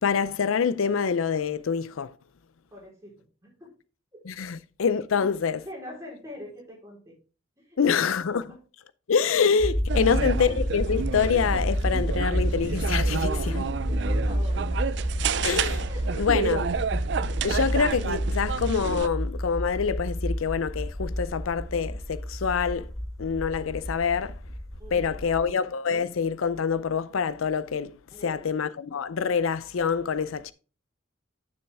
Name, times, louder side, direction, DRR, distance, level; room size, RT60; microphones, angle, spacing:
voice 1, 0.0-2.1 4.3-5.6 7.8-8.4 9.1-13.3 15.4-15.9 16.2-16.6 17.4-22.9 23.2-24.3 24.9-27.9 28.2-30.5, left 6 dB, 85° left, 0.5 m, -26 dB
voice 2, 2.7-3.8 4.1-4.2 5.1-5.3 5.6-7.1 7.6-7.8 8.5-8.6 9.9-10.5 13.2-14.6 15.8-16.4 24.8-25.4 28.1-28.5, left 1 dB, 15° right, 4.0 m, -43 dB
sound 1, 9.6-25.4, equal, 15° left, 1.4 m, -30 dB
sound 2, 9.9-19.1, right 6 dB, 60° right, 0.4 m, -30 dB
9.6 x 6.4 x 3.5 m
head